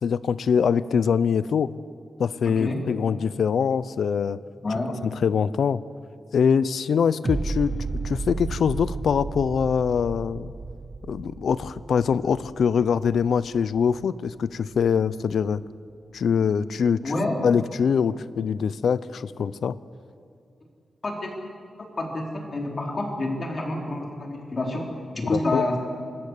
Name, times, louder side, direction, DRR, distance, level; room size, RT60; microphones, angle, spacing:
voice 1, 0.0-1.7 2.2-4.4 5.2-5.8 6.3-7.7 8.0-10.5 11.1-15.6 16.1-17.0 17.4-19.8 25.2-25.6, left 6 dB, 75° left, 16 dB, 0.7 m, -23 dB
voice 2, 2.4-2.8 4.6-5.0 17.0-17.4 21.0-21.4 21.8-25.8, left 2 dB, 35° left, 1 dB, 4.3 m, -28 dB
sound 1, 7.2-14.3 14.7-14.8, right 3 dB, 25° right, 0.6 m, -33 dB
26.5 x 20.0 x 8.4 m, 2.4 s
wide cardioid pair, 145°, 0 cm